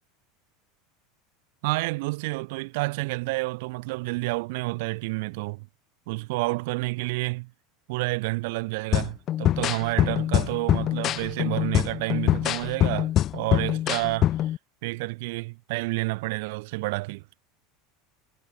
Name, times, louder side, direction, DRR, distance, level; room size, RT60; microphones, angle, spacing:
voice 1, 1.6-5.7 6.1-7.5 7.9-14.5 14.8-17.2, right 24 dB, 60° right, 0.5 m, -29 dB
sound 1, 8.9-14.6, left 12 dB, 40° left, 0.6 m, -24 dB
figure-of-eight pair, 80°, 0 cm